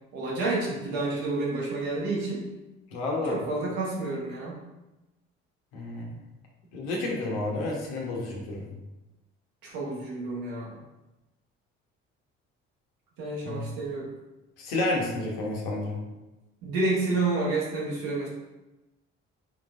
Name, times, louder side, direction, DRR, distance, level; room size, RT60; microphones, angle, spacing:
voice 1, 0.1-2.5 3.2-4.6 9.6-10.8 13.2-14.1 16.6-18.3, right 2 dB, 80° right, -4 dB, 1.4 m, -29 dB
voice 2, 2.9-3.4 5.7-6.1 6.7-8.7 13.4-13.7 14.6-16.0, left 2 dB, 85° left, -2 dB, 1.1 m, -30 dB
4.3 x 4.1 x 2.5 m, 1.0 s
hypercardioid pair, 60°, 32 cm